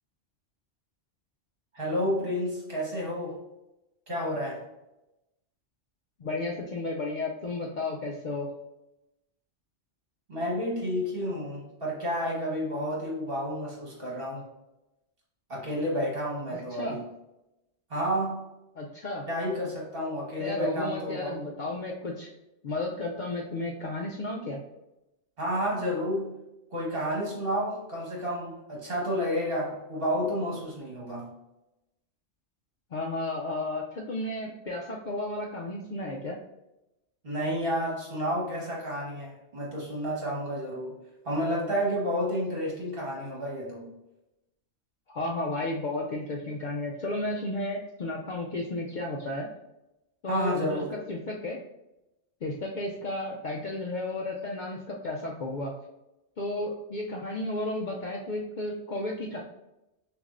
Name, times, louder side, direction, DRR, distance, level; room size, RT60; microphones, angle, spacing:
voice 1, 1.7-3.4 4.1-4.6 10.3-14.5 15.5-17.0 17.9-18.4 19.3-21.5 25.4-26.3 26.7-31.3 37.2-41.0 41.2-43.9 50.3-50.9, equal, 55° right, -4 dB, 1.6 m, -30 dB
voice 2, 6.2-8.5 16.5-17.0 18.8-19.3 20.4-22.3 22.6-24.6 32.9-36.4 45.1-49.5 50.2-51.6 52.4-55.7 56.4-59.4, left 2 dB, 60° left, -1 dB, 0.5 m, -33 dB
6.3 x 2.6 x 2.5 m, 0.93 s
omnidirectional pair, 1.2 m